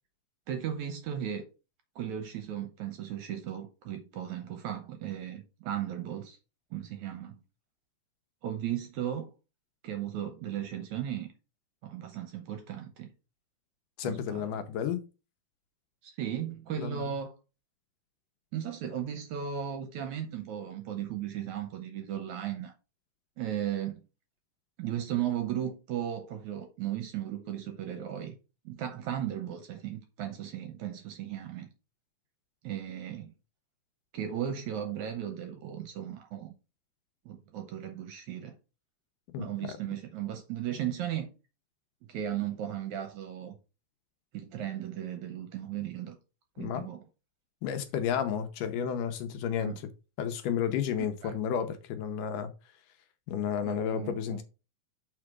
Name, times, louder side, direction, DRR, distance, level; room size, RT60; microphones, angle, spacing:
voice 1, 0.5-1.5 2.0-6.4 6.7-7.4 8.4-9.3 9.8-11.3 11.8-13.1 14.0-14.4 16.0-17.3 18.5-22.7 23.4-24.0 24.8-28.4 28.7-31.7 32.6-33.3 34.1-36.5 37.3-38.5 39.4-41.3 42.0-43.6 44.3-46.2 46.6-47.0 49.6-49.8 51.2-51.4 53.7-54.4, right 10 dB, 70° right, 1.9 m, -36 dB
voice 2, 14.0-15.0 16.8-17.0 39.3-39.5 46.6-46.9 47.6-49.7 50.2-52.5 53.3-54.4, left 8 dB, 75° left, 2.2 m, -32 dB
6.8 x 4.8 x 4.7 m
omnidirectional pair, 4.1 m